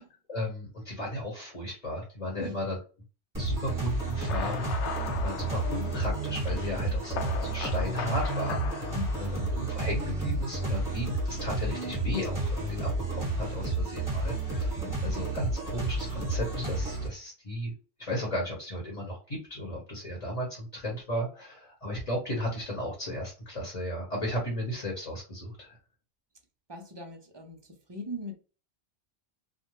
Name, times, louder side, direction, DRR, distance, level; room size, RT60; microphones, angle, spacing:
voice 1, 0.3-2.8 3.4-17.7 18.0-25.8, equal, 35° left, 1.0 m, -35 dB
sound 1, 3.3-17.1, right 2 dB, 20° right, 1.2 m, -31 dB
sound 2, 4.1-9.9, left 7 dB, 85° left, 0.9 m, -39 dB
voice 2, 8.9-9.5 14.8-15.2 26.7-28.4, left 1 dB, 40° right, 0.4 m, -41 dB
2.4 x 2.1 x 3.0 m
omnidirectional pair, 1.1 m